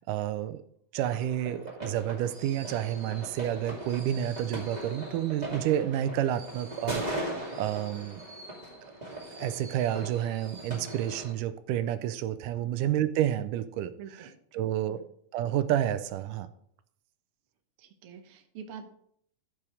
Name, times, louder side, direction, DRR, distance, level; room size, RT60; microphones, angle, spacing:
voice 1, 0.1-0.6 0.9-8.2 9.4-14.3 14.5-15.0 15.3-16.5, right 11 dB, 85° right, 12 dB, 2.2 m, -30 dB
sound 1, 1.0-11.3, right 1 dB, 15° right, 2.0 m, -39 dB
voice 2, 14.0-15.0 17.8-18.9, right 7 dB, 60° right, 6 dB, 1.5 m, -47 dB
13.5 x 4.9 x 4.9 m, 0.66 s
omnidirectional pair, 3.7 m